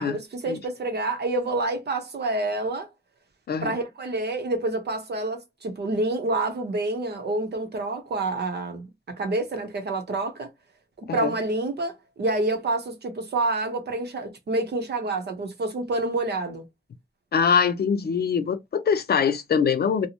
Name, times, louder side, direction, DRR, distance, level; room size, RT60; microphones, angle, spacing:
voice 1, 0.0-2.9 3.6-10.5 11.1-16.6, right 2 dB, 80° right, 0.8 m, -28 dB
voice 2, 3.5-3.8 11.1-11.3 17.3-20.1, left 6 dB, 70° left, 0.5 m, -23 dB
2.6 x 2.1 x 2.8 m
wide cardioid pair, 90°, 17 cm